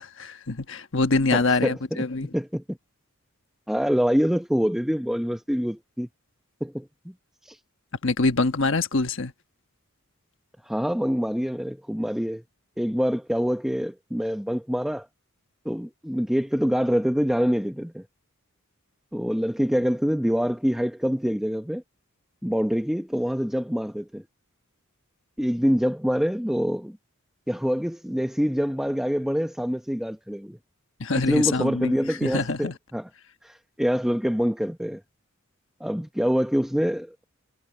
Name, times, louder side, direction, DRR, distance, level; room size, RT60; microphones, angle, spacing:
voice 1, 0.0-2.3 8.0-9.3 31.0-32.8, left 3 dB, 60° left, 1.2 m, -25 dB
voice 2, 1.3-2.0 2.3-2.8 3.7-6.1 6.6-7.1 7.4-7.6 10.6-12.4 12.8-15.1 15.6-18.0 19.1-21.8 22.4-24.2 25.4-27.0 27.5-30.6 31.2-33.1 33.4-35.0 35.8-37.2, equal, ahead, 0.8 m, -25 dB
head